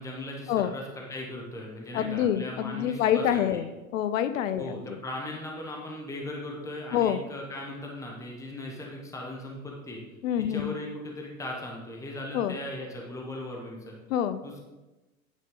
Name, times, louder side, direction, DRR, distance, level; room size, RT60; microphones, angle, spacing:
voice 1, 0.0-3.6 4.6-10.0 10.5-13.9 14.4-14.6, left 1 dB, 5° left, -1 dB, 1.2 m, -38 dB
voice 2, 1.9-5.0 6.9-7.2 10.2-10.8 12.3-12.6 14.1-14.4, left 10 dB, 65° left, 12 dB, 0.6 m, -27 dB
9.8 x 5.0 x 3.8 m, 1.1 s
hypercardioid pair, 105°, 43 cm